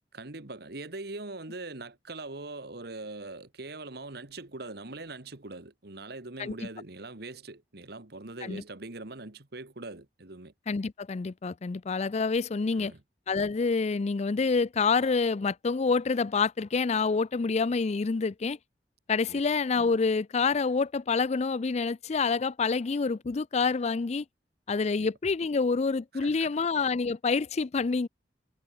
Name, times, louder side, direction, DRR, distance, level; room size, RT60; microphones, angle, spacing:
voice 1, 0.1-10.5 12.7-13.0 19.3-19.4 25.0-25.1 26.1-26.6, right 2 dB, 65° right, 1.8 m, -42 dB
voice 2, 10.7-12.9 13.3-18.6 19.1-24.2 24.7-28.1, left 4 dB, 40° left, 0.4 m, -27 dB
head